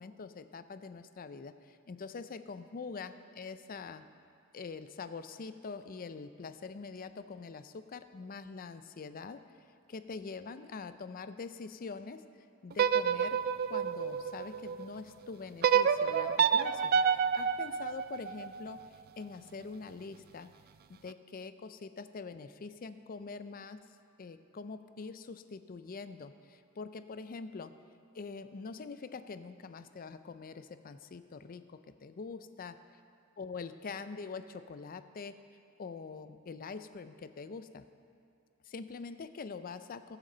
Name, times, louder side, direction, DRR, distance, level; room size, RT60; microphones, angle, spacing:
voice 1, 0.0-4.1 4.5-9.4 9.9-12.2 12.6-13.4 13.7-20.5 21.0-23.8 24.2-27.7 28.1-32.8 33.4-35.3 35.8-37.8 38.6-40.2, left 4 dB, 40° left, 11 dB, 0.4 m, -44 dB
sound 1, 12.7-14.9 15.6-18.8, right 7 dB, 45° right, 0.3 m, -28 dB
20.0 x 7.4 x 3.9 m, 2.4 s
head